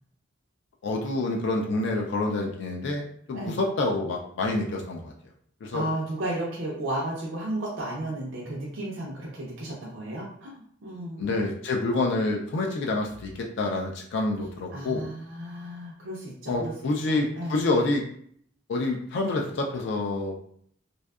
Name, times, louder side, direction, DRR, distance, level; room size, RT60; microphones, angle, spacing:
voice 1, 0.8-3.0 3.3-5.1 5.6-5.8 11.2-13.3 13.6-15.0 16.5-18.0 18.7-20.3, left 2 dB, 65° left, 1 dB, 0.3 m, -27 dB
voice 2, 5.7-11.2 14.7-16.7 17.0-17.6, right 1 dB, 75° right, -4 dB, 0.5 m, -33 dB
2.6 x 2.3 x 2.3 m, 0.63 s
head